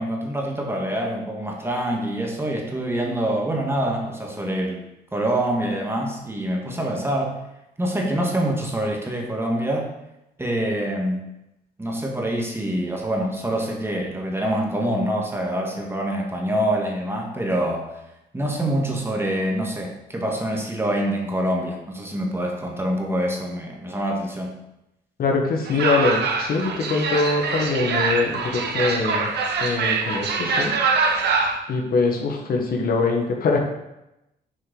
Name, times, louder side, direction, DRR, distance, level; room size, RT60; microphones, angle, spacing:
voice 1, 0.0-4.8 5.1-7.4 7.8-9.9 10.4-11.3 11.8-17.9 18.3-24.5, right 1 dB, 15° right, 0 dB, 1.4 m, -25 dB
voice 2, 25.2-29.3 29.6-30.7 31.7-33.6, left 3 dB, 60° left, 2 dB, 1.2 m, -23 dB
sound 1, 25.6-31.6, right 4 dB, 75° right, 0.9 m, -24 dB
6.4 x 4.6 x 3.8 m, 0.90 s
cardioid pair, 85°, 17 cm